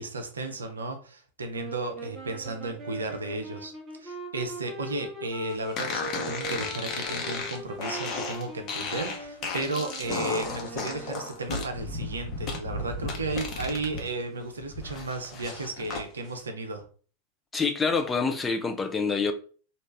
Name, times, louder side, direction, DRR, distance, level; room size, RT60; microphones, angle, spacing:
voice 1, 0.0-3.7 4.0-16.8, right 3 dB, 70° right, 0.6 m, -34 dB
sound 1, 1.5-11.5, right 1 dB, 15° right, 0.9 m, -41 dB
sound 2, 5.8-14.1 14.4-16.0, left 4 dB, 35° left, 0.9 m, -34 dB
voice 2, 17.5-19.3, left 4 dB, 15° left, 0.4 m, -26 dB
3.1 x 2.4 x 3.3 m
figure-of-eight pair, 90°, 0 cm